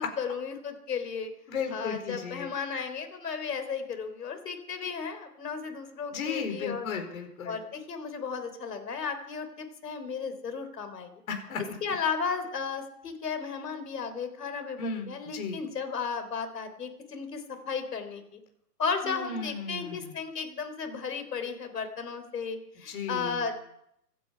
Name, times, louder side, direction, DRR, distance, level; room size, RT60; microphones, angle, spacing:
voice 1, 0.0-1.3 1.7-6.9 7.5-11.1 11.8-18.2 18.8-23.5, left 5 dB, 70° left, 8 dB, 3.7 m, -34 dB
voice 2, 1.5-2.5 6.1-7.6 11.3-11.7 14.8-15.6 19.0-20.1 22.9-23.4, left 5 dB, 55° left, 6 dB, 4.5 m, -35 dB
25.5 x 9.3 x 5.7 m, 0.75 s
hypercardioid pair, 135°, 49 cm